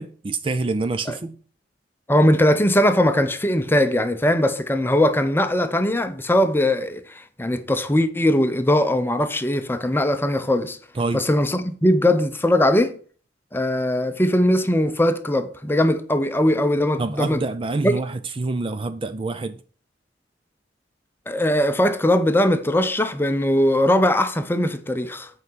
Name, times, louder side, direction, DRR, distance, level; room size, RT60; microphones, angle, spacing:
voice 1, 0.0-1.4 11.0-11.2 17.0-19.6, right 3 dB, 30° right, 0.4 m, -26 dB
voice 2, 2.1-10.8 11.1-13.0 13.5-17.4 17.8-18.0 21.3-25.3, left 1 dB, 10° left, 0.7 m, -20 dB
8.2 x 4.9 x 6.1 m
head